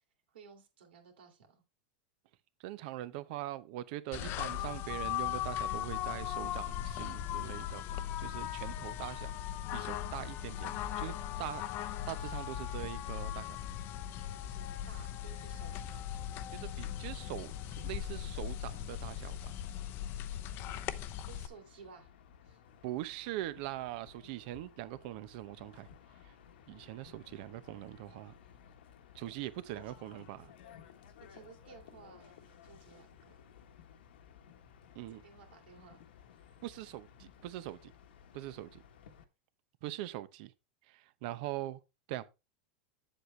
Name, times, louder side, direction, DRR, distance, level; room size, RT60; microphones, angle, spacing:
voice 1, 0.3-1.6 14.4-16.2 21.3-22.1 22.4-22.6 31.3-33.4 35.1-36.0, right 6 dB, 90° right, 3.1 m, -56 dB
voice 2, 2.6-7.8 8.2-9.3 9.7-11.1 11.4-13.6 16.5-19.4 22.8-25.9 26.2-26.3 26.7-28.3 29.1-30.5 34.9-35.2 36.6-37.9 38.3-38.8 39.8-40.5 40.9-41.8 42.1-42.3, right 15 dB, 60° right, 0.8 m, -42 dB
sound 1, 4.1-21.5, left 11 dB, 40° left, 0.7 m, -38 dB
sound 2, 19.6-39.2, left 8 dB, 80° left, 1.3 m, -58 dB
8.1 x 7.7 x 3.3 m
supercardioid pair, 135°, 5 cm